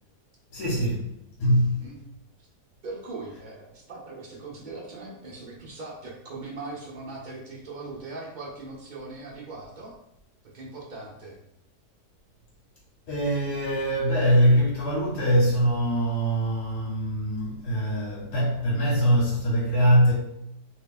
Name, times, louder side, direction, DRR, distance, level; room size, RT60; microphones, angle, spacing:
voice 1, 0.5-1.1 1.4-1.8 13.1-20.1, equal, 75° left, 1.4 m, -23 dB
voice 2, 2.8-9.9 10.5-11.4, right 3 dB, 40° right, 0.7 m, -40 dB
2.8 x 2.8 x 3.4 m
omnidirectional pair, 1.7 m